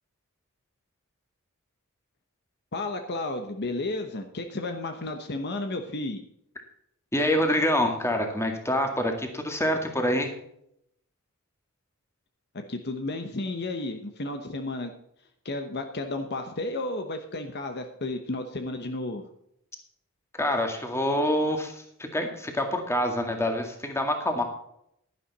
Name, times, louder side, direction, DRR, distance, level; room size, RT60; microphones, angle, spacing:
voice 1, 2.7-6.2 12.5-15.0 15.4-19.2, left 2 dB, 50° left, 6 dB, 1.0 m, -32 dB
voice 2, 7.1-10.3 20.4-21.8 22.1-24.4, left 1 dB, 10° left, 4 dB, 2.0 m, -26 dB
11.5 x 10.5 x 4.2 m, 0.74 s
head